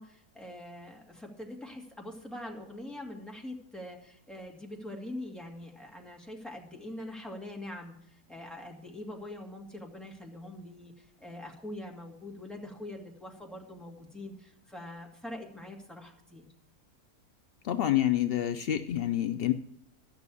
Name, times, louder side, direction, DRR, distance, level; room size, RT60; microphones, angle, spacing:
voice 1, 0.0-16.5, left 1 dB, ahead, 0 dB, 2.1 m, -43 dB
voice 2, 17.6-19.5, left 12 dB, 75° left, 9 dB, 0.5 m, -27 dB
13.5 x 6.1 x 8.3 m, 0.70 s
omnidirectional pair, 1.7 m